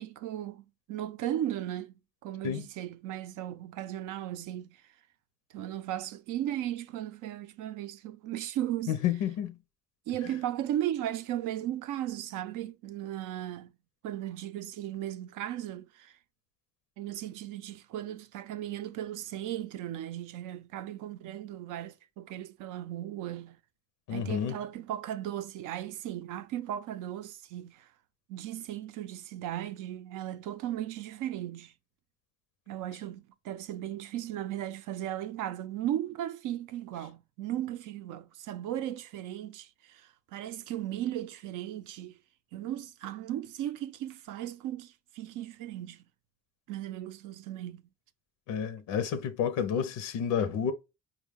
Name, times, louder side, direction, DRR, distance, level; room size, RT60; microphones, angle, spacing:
voice 1, 0.0-4.8 5.5-9.0 10.1-13.7 14.0-16.2 17.0-23.6 24.1-27.9 28.3-31.7 32.7-42.2 42.5-46.0 46.7-47.8, right 12 dB, 90° right, 0.5 m, -36 dB
voice 2, 8.9-9.6 24.1-24.6 48.5-50.7, left 8 dB, 90° left, 0.6 m, -30 dB
4.5 x 2.1 x 3.4 m
cardioid pair, 90°, 30 cm